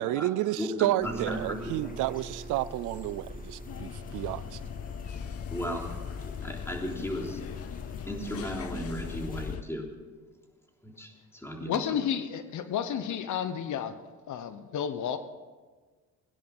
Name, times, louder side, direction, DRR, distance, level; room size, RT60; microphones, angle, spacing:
voice 1, 0.0-4.6, right 15 dB, 85° right, 0.5 m, -31 dB
voice 2, 0.6-1.7 5.5-7.4 8.1-9.9 10.8-11.8, equal, 10° left, 3.4 m, -36 dB
sound 1, 1.0-9.6, left 3 dB, 30° left, 1.6 m, -44 dB
Guitar, 1.0-6.4, right 5 dB, 25° right, 0.6 m, -45 dB
sound 2, 3.7-9.6, left 9 dB, 50° left, 0.6 m, -40 dB
voice 3, 11.6-14.0 14.3-15.2, left 8 dB, 75° left, 1.0 m, -31 dB
17.5 x 10.5 x 6.1 m
cardioid pair, 90°, 30 cm